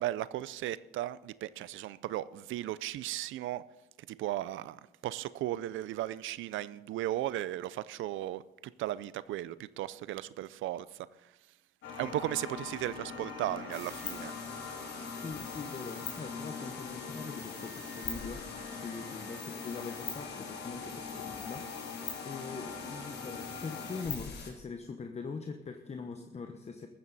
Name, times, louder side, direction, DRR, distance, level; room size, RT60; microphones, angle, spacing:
voice 1, 0.0-3.6 4.1-10.9 12.0-14.3, right 14 dB, 85° right, 0.5 m, -36 dB
sound 1, 11.8-24.0, left 5 dB, 80° left, 3.3 m, -43 dB
sound 2, 13.7-24.5, left 5 dB, 60° left, 4.3 m, -45 dB
voice 2, 15.2-21.8 22.2-26.9, left 4 dB, 35° left, 1.0 m, -42 dB
14.5 x 14.0 x 4.1 m
cardioid pair, 90°, 20 cm